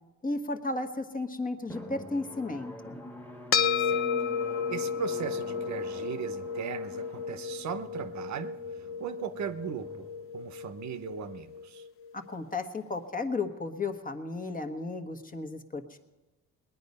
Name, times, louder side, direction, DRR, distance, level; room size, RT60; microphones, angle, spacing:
voice 1, 0.2-3.0 12.1-16.0, left 3 dB, 30° left, 6 dB, 1.2 m, -34 dB
Drum, 1.7-11.0, equal, 5° left, 1.5 m, -46 dB
sound 1, 3.5-12.1, left 7 dB, 45° left, 0.7 m, -33 dB
voice 2, 4.7-8.6 9.0-10.1 10.3-11.9, right 9 dB, 65° right, 11 dB, 0.9 m, -38 dB
20.0 x 9.5 x 5.4 m, 1.1 s
cardioid pair, 90°, 30 cm